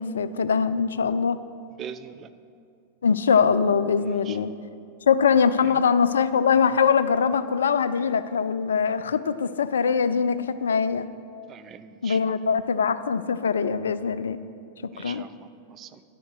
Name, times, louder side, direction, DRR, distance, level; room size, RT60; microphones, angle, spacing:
voice 1, 0.0-1.4 3.0-4.5 5.1-11.1 12.0-14.4 14.8-15.2, left 6 dB, 65° left, 14 dB, 0.3 m, -22 dB
voice 2, 1.8-2.3 4.2-4.4 5.6-5.7 11.5-12.5 14.9-16.0, right 8 dB, 30° right, 11 dB, 0.4 m, -42 dB
10.5 x 7.2 x 6.4 m, 2.5 s
figure-of-eight pair, 90°, 0 cm